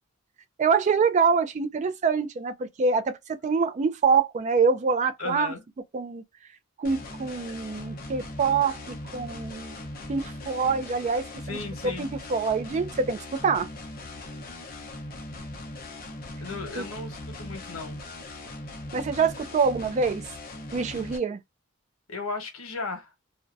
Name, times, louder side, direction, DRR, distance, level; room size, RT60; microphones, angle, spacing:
voice 1, 0.6-5.5 5.9-6.2 6.8-9.8 10.1-13.7 16.8-16.9 18.9-20.2 20.7-21.4, right 5 dB, 35° right, 0.3 m, -25 dB
voice 2, 5.2-5.6 11.4-12.1 16.4-18.0 22.1-23.1, left 3 dB, 90° left, 1.0 m, -35 dB
sound 1, 6.8-21.2, left 2 dB, 45° left, 0.6 m, -40 dB
2.6 x 2.1 x 2.3 m
head